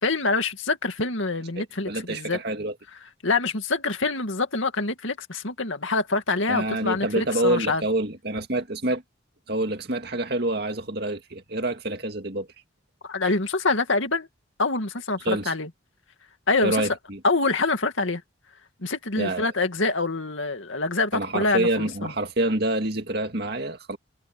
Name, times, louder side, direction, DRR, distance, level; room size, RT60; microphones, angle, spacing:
voice 1, 0.0-2.4 3.2-7.8 13.1-14.3 14.6-15.7 16.5-16.8 17.2-18.2 18.8-22.1, left 3 dB, 75° left, 2.2 m, -25 dB
voice 2, 1.6-2.7 6.5-9.0 9.5-12.5 15.3-15.5 16.6-17.2 19.2-19.5 21.1-24.0, right 1 dB, 50° right, 2.2 m, -27 dB
head